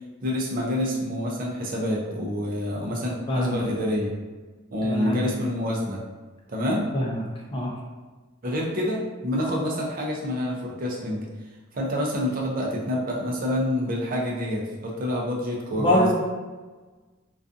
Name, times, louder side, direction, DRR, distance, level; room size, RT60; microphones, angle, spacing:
voice 1, 0.2-4.1 4.7-6.0 6.5-6.9 8.4-11.2 11.7-16.1, left 1 dB, 40° right, -3 dB, 0.5 m, -27 dB
voice 2, 4.8-5.2 6.9-7.2 7.5-7.7 15.7-16.1, equal, 25° left, -2 dB, 0.4 m, -24 dB
2.5 x 2.3 x 2.5 m, 1.3 s
head